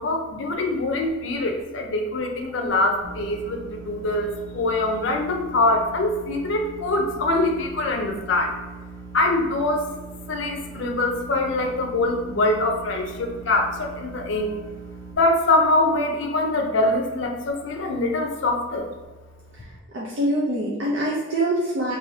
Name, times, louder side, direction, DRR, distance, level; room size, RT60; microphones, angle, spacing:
voice 1, 0.0-8.5 9.1-9.9 10.3-14.6 15.2-18.9, left 2 dB, 70° left, 3 dB, 0.5 m, -23 dB
sound 1, 3.0-15.1, right 4 dB, 80° right, 0.9 m, -41 dB
voice 2, 19.9-22.0, right 1 dB, 60° right, -6 dB, 0.6 m, -24 dB
4.7 x 2.7 x 2.7 m, 1.2 s
head